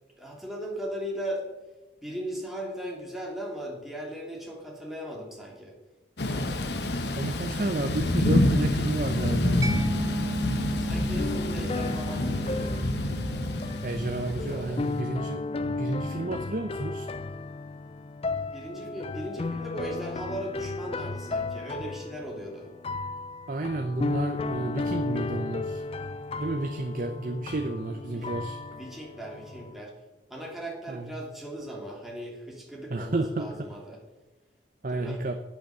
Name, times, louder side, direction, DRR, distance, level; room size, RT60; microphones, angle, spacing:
voice 1, 0.2-1.4 2.0-5.7 10.8-12.8 14.2-14.8 18.5-22.7 28.1-28.3 28.7-29.9 30.3-34.0 34.9-35.2, equal, ahead, -3 dB, 2.7 m, -37 dB
Thunder / Rain, 6.2-15.0, left 1 dB, 65° left, 1.2 m, -28 dB
voice 2, 7.2-9.6 13.8-15.4 15.7-17.1 23.5-25.8 26.4-28.6 30.9-31.1 32.9-33.7 34.8-35.4, right 2 dB, 50° right, 6 dB, 0.7 m, -31 dB
Mallet percussion, 9.6-17.0, right 1 dB, 20° right, 0.6 m, -36 dB
sound 1, 11.2-29.7, left 3 dB, 35° left, 0.4 m, -34 dB
9.1 x 8.8 x 6.8 m, 1.1 s
head